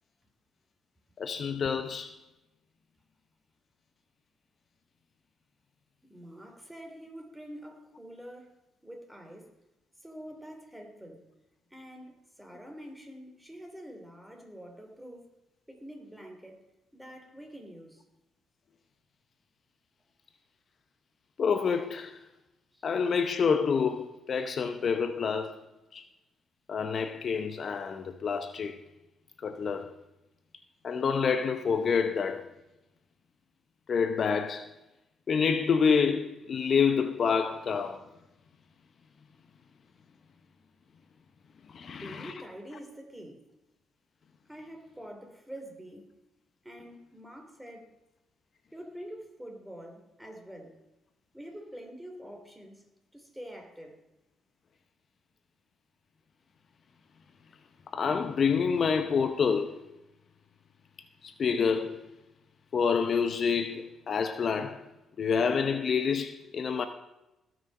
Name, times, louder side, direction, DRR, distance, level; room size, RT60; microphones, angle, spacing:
voice 1, 1.2-2.1 21.4-22.2 22.8-25.6 25.9-26.0 26.7-28.8 29.4-29.9 30.8-32.5 33.9-34.7 35.3-38.0 41.7-42.3 57.9-59.7 61.2-62.0 62.7-64.8 65.2-66.9, left 6 dB, 50° left, 0.9 m, -27 dB
voice 2, 6.1-9.5 10.0-11.2 11.7-15.3 15.7-16.6 16.9-18.0 22.7-22.9 41.9-43.4 44.5-46.1 46.6-48.0 48.7-50.8 51.3-52.9 53.1-54.0, equal, 5° right, 2.9 m, -46 dB
18.0 x 6.2 x 5.4 m
cardioid pair, 90°, 0 cm